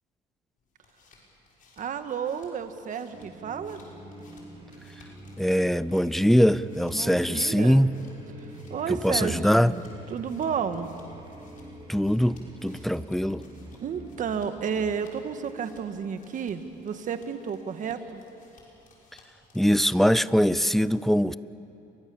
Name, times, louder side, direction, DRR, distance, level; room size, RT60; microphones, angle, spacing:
sound 1, 0.6-20.2, left 3 dB, 50° left, 6.2 m, -58 dB
voice 1, 1.8-3.8 6.9-7.9 8.4-9.8 10.1-10.9 13.8-18.2, right 7 dB, 50° right, 9 dB, 1.6 m, -32 dB
sound 2, 3.1-15.0, right 1 dB, 30° right, 4.8 m, -44 dB
voice 2, 5.4-7.9 8.9-9.7 11.9-13.4 19.5-21.4, equal, ahead, 17 dB, 0.5 m, -22 dB
29.0 x 23.0 x 7.1 m, 2.9 s
cardioid pair, 110°, 17 cm